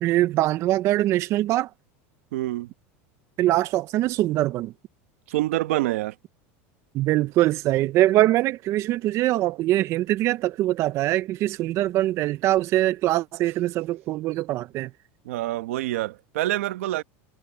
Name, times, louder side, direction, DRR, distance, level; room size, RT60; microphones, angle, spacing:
voice 1, 0.0-1.7 3.4-4.7 6.9-14.9, right 15 dB, 40° right, 0.5 m, -23 dB
voice 2, 2.3-2.7 5.3-6.1 15.2-17.0, right 16 dB, 85° right, 1.1 m, -26 dB
supercardioid pair, 135°, 7 cm